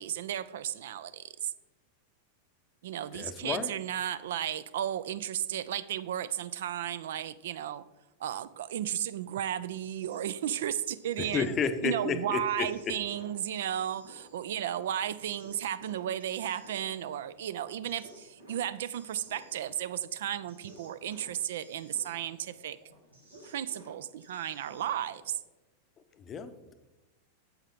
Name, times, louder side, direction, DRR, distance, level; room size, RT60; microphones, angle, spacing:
voice 1, 0.0-1.5 2.8-7.8 8.2-11.5 11.8-22.8 23.4-25.4, right 10 dB, 60° right, 17 dB, 0.4 m, -34 dB
voice 2, 3.1-3.7 11.2-12.9 26.3-26.7, left 6 dB, 25° left, 10 dB, 0.7 m, -32 dB
sound 1, 9.1-25.4, right 1 dB, 85° right, 2.1 m, -56 dB
8.9 x 7.4 x 3.6 m, 1.0 s
figure-of-eight pair, 90°, 0 cm